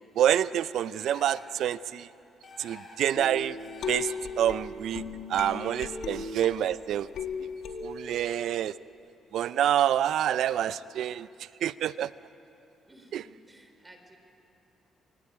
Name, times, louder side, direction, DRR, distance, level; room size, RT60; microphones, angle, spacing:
voice 1, 0.2-2.1 2.6-3.6 3.9-5.0 5.3-7.1 7.8-8.7 9.3-11.3 11.6-12.1 13.1-13.2, right 11 dB, 75° right, 16 dB, 0.6 m, -27 dB
sound 1, 0.9-1.6 2.4-3.1 3.6-4.4, left 3 dB, 40° left, 5.1 m, -49 dB
sound 2, 3.1-6.7 7.1-8.4, left 5 dB, 70° left, 2.3 m, -36 dB
voice 2, 12.9-14.2, right 1 dB, 15° right, 5 dB, 3.8 m, -55 dB
27.0 x 22.5 x 8.8 m, 2.8 s
cardioid pair, 90°, 0 cm